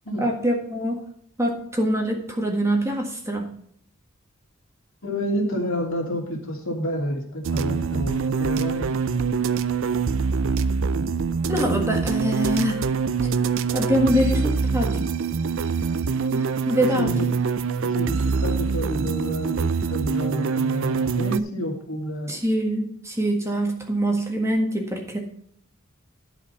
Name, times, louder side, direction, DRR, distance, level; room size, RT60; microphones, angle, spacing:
voice 1, 0.2-1.0 1.4-3.5 11.5-12.8 13.7-15.1 16.3-17.1 22.3-25.2, equal, 15° right, 2 dB, 1.6 m, -24 dB
voice 2, 5.0-8.9 16.7-17.3 17.8-22.3, equal, 70° left, -1 dB, 2.9 m, -29 dB
sound 1, 7.4-21.4, right 5 dB, 70° right, 0.5 m, -24 dB
11.5 x 5.1 x 5.7 m, 0.65 s
head